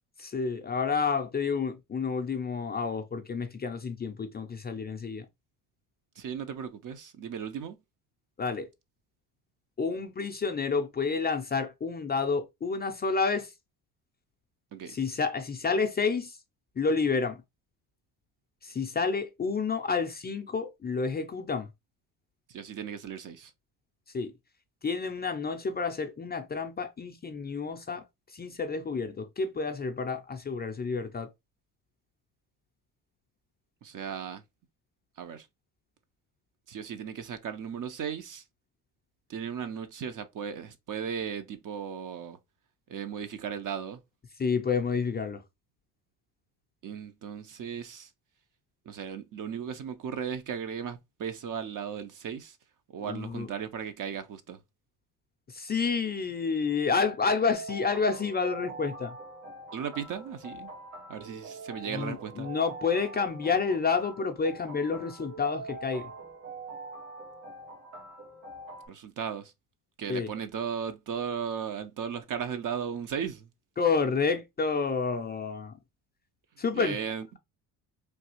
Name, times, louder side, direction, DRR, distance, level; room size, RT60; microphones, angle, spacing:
voice 1, 0.2-5.3 8.4-8.7 9.8-13.5 14.9-16.4 16.8-17.4 18.6-21.7 24.1-24.3 24.8-28.0 28.3-31.3 44.4-45.4 53.0-53.5 55.5-59.1 61.8-66.1 70.1-70.3 73.8-75.8 76.6-77.0, left 5 dB, 25° left, 0.4 m, -29 dB
voice 2, 6.2-7.8 14.7-15.0 22.5-23.5 33.8-34.4 35.2-35.5 36.7-38.4 39.3-42.4 42.9-44.0 46.8-48.1 48.9-52.6 52.9-54.6 59.7-60.7 61.1-62.5 68.9-69.5 70.0-73.5 76.7-77.4, right 7 dB, 50° right, 0.6 m, -36 dB
sound 1, 57.5-68.9, right 3 dB, 85° right, 1.6 m, -44 dB
3.3 x 2.4 x 2.9 m
cardioid pair, 85°, 42 cm